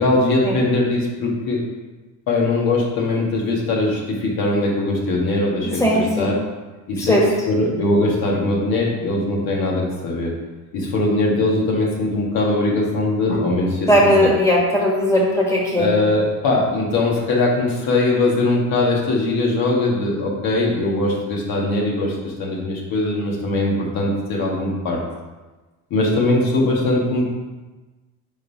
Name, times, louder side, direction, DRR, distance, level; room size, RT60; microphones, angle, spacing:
voice 1, 0.0-1.6 2.3-6.4 6.9-7.2 7.5-10.3 10.7-14.3 15.7-25.0 25.9-27.2, left 2 dB, 75° left, -3 dB, 1.8 m, -21 dB
voice 2, 5.8-6.3 7.0-7.2 13.9-15.9, equal, 10° left, -4 dB, 1.6 m, -17 dB
5.3 x 3.7 x 5.4 m, 1.2 s
cardioid pair, 115°, 36 cm